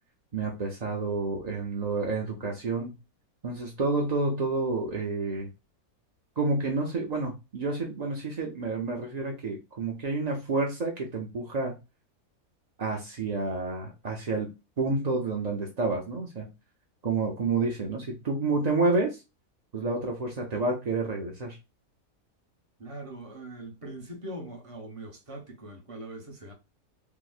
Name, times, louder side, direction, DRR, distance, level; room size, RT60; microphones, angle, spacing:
voice 1, 0.3-2.9 3.4-5.5 6.4-11.7 12.8-14.5 14.8-16.5 17.0-19.2 19.7-21.6, right 3 dB, 55° right, 0.4 m, -29 dB
voice 2, 22.8-26.5, right 1 dB, 30° right, 0.8 m, -41 dB
4.7 x 2.1 x 2.4 m
omnidirectional pair, 1.5 m